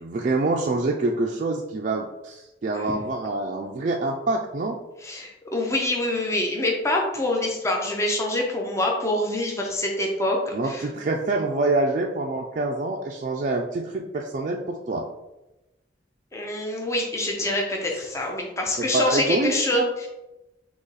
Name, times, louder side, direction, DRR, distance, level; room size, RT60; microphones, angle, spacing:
voice 1, 0.0-4.8 10.5-15.0 18.8-20.1, right 2 dB, 40° right, 0 dB, 0.3 m, -26 dB
voice 2, 5.0-10.9 16.3-20.1, left 1 dB, 15° left, 0 dB, 0.6 m, -25 dB
3.9 x 2.9 x 3.9 m, 0.98 s
head